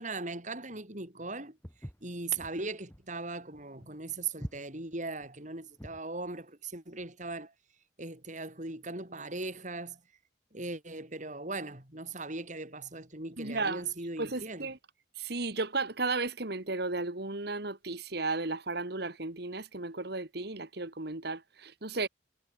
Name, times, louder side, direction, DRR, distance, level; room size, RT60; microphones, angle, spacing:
voice 1, 0.0-1.6 2.0-7.5 8.0-10.0 10.5-14.7, right 3 dB, 40° right, 5.4 m, -39 dB
Walk footsteps, 1.6-6.1, equal, 10° left, 7.7 m, -45 dB
voice 2, 13.4-13.8 14.2-14.8 15.2-22.1, right 3 dB, 60° right, 2.1 m, -34 dB
head